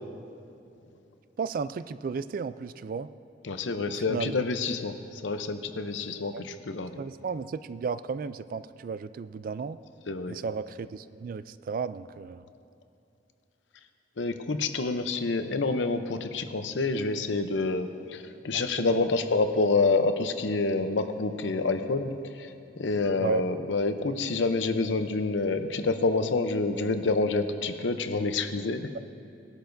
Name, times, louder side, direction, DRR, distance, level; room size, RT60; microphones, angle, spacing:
voice 1, 1.4-3.1 3.9-4.4 6.3-6.4 7.0-9.8 10.3-12.5 18.5-19.1 23.2-23.5, right 5 dB, 50° right, 14 dB, 0.3 m, -34 dB
voice 2, 3.4-4.9 5.2-6.9 10.1-10.4 14.2-22.1 22.4-22.5 22.8-29.0, left 3 dB, 85° left, 8 dB, 0.7 m, -27 dB
18.5 x 11.5 x 2.6 m, 2.7 s
head